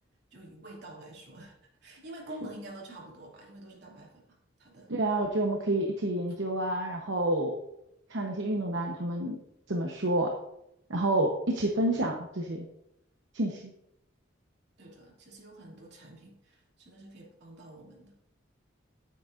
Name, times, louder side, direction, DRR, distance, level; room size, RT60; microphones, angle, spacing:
voice 1, 0.3-1.5 1.8-4.9 5.8-5.9 8.6-8.8 14.8-18.1, right 1 dB, 55° right, -3 dB, 2.6 m, -48 dB
voice 2, 4.9-7.5 8.1-9.4 9.7-10.3 10.9-12.6 13.3-13.7, right 1 dB, 70° right, 1 dB, 1.0 m, -29 dB
9.8 x 8.8 x 2.6 m, 0.81 s
head